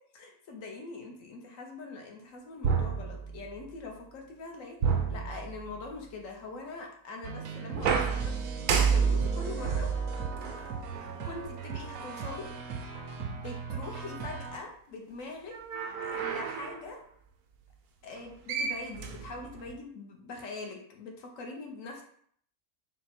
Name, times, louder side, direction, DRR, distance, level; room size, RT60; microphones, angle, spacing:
voice 1, 0.1-9.9 11.2-12.5 13.2-15.6 16.0-17.0 18.0-22.0, left 3 dB, 65° left, 2 dB, 1.0 m, -43 dB
sound 1, 2.6-3.7 4.8-6.0 7.7-11.3 12.2-12.3 15.5-16.8 18.2-18.3 18.5-19.7, right 6 dB, 90° right, 1.1 m, -30 dB
sound 2, 7.2-14.6, right 5 dB, 70° right, 0.9 m, -39 dB
4.2 x 2.1 x 4.2 m, 0.62 s
omnidirectional pair, 1.6 m